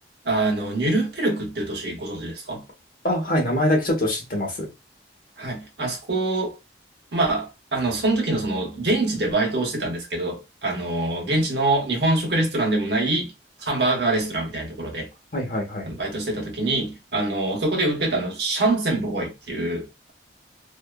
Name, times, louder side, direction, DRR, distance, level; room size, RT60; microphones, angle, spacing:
voice 1, 0.2-2.6 5.4-6.6 7.1-13.3 13.6-15.1 15.9-20.1, right 2 dB, 65° right, 1.1 m, -24 dB
voice 2, 3.0-4.7 15.3-15.9, left 1 dB, 50° left, 1.0 m, -23 dB
2.7 x 2.4 x 2.2 m
head